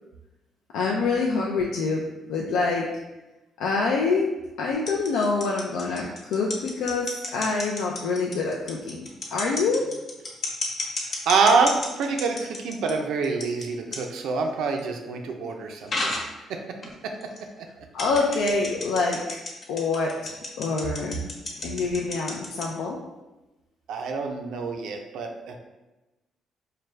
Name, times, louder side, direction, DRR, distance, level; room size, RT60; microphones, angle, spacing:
voice 1, 0.7-2.9 3.6-4.3 4.6-9.9 17.9-19.2 19.7-21.2 21.6-23.0, left 4 dB, 90° left, -1 dB, 0.4 m, -26 dB
sound 1, 4.7-12.9 13.2-13.7 13.9-14.0 14.8-14.9 15.9-16.3 16.8-16.9 17.2-17.4 18.0-22.7, left 2 dB, 50° left, 1.0 m, -31 dB
voice 2, 11.3-16.1 16.5-16.6 17.8-17.9 23.9-25.6, right 4 dB, 80° right, 4 dB, 0.5 m, -26 dB
4.8 x 2.2 x 3.2 m, 1.0 s
cardioid pair, 90°, 0 cm